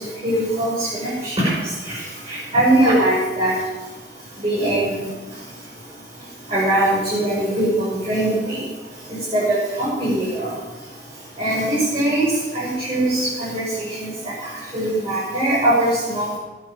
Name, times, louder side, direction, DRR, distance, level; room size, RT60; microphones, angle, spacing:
voice 1, 0.2-1.5 1.9-2.0 2.3-3.5 4.4-5.0 6.5-8.6 9.1-10.5 11.4-12.3 12.5-14.1 14.7-16.4, right 1 dB, 30° right, -9 dB, 6.3 m, -21 dB
20.0 x 8.9 x 7.4 m, 1.2 s
head